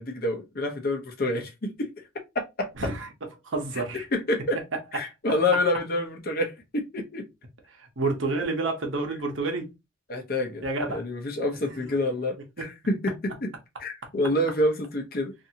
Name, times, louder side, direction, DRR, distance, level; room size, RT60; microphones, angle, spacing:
voice 1, 0.0-1.9 2.3-2.7 4.1-4.6 4.9-7.3 10.1-13.5 13.8-15.3, left 1 dB, 45° left, 0.7 m, -28 dB
voice 2, 2.8-3.1 3.4-4.0 7.7-9.7 10.6-11.0 11.6-11.9 12.6-12.7, right 3 dB, 70° right, 0.9 m, -29 dB
2.7 x 2.6 x 2.7 m
head